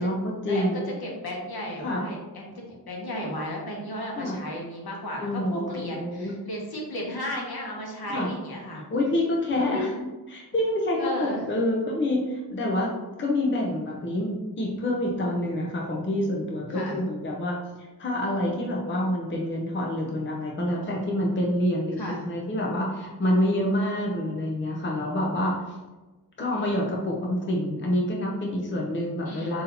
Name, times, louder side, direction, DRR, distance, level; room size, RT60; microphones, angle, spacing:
voice 1, 0.0-0.8 1.8-2.0 4.2-4.4 5.2-6.4 8.1-8.3 8.9-9.9 10.3-12.9 13.2-25.8 26.4-29.6, left 1 dB, 30° left, -2 dB, 0.7 m, -27 dB
voice 2, 1.0-2.5 2.9-8.8 9.6-9.8 11.0-11.5 16.7-17.0 22.0-22.2 29.3-29.5, equal, 65° left, -1 dB, 1.2 m, -34 dB
4.0 x 2.8 x 4.1 m, 1.2 s
wide cardioid pair, 125°, 40 cm